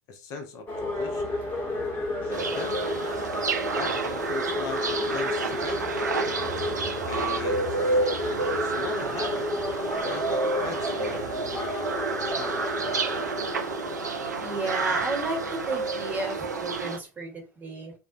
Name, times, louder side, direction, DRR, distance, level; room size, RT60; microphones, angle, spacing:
voice 1, 0.1-1.3 2.2-2.8 3.7-6.0 7.1-8.0 8.5-9.5 10.0-11.7 12.3-12.8, left 4 dB, 40° left, 0.4 m, -39 dB
sound 1, 0.7-16.8, left 1 dB, 20° left, 1.0 m, -33 dB
sound 2, 2.3-17.0, right 4 dB, 80° right, 0.4 m, -30 dB
voice 2, 14.4-17.9, right 2 dB, 20° right, 0.9 m, -32 dB
2.5 x 2.0 x 2.5 m
figure-of-eight pair, 80°, 9 cm